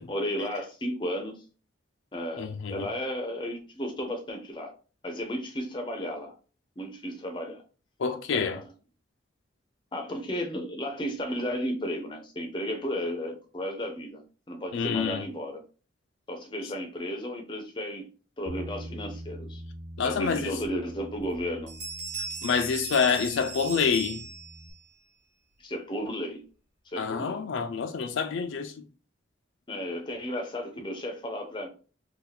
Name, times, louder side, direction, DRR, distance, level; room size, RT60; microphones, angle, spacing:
voice 1, 0.1-1.3 2.1-4.7 5.0-6.3 6.8-7.6 8.3-8.6 9.9-15.6 16.3-18.1 18.4-19.6 20.0-21.7 25.6-26.4 26.9-27.4 29.7-31.7, equal, 25° left, 0.5 m, -34 dB
voice 2, 2.4-2.9 8.0-8.6 14.7-15.3 20.0-20.6 22.4-24.2 27.0-28.7, left 6 dB, 75° left, 0.4 m, -27 dB
Bass guitar, 18.5-24.7, equal, 50° right, 0.6 m, -44 dB
sound 1, 21.2-21.4 21.7-24.8, right 4 dB, 80° right, 1.3 m, -38 dB
2.8 x 2.3 x 4.0 m
head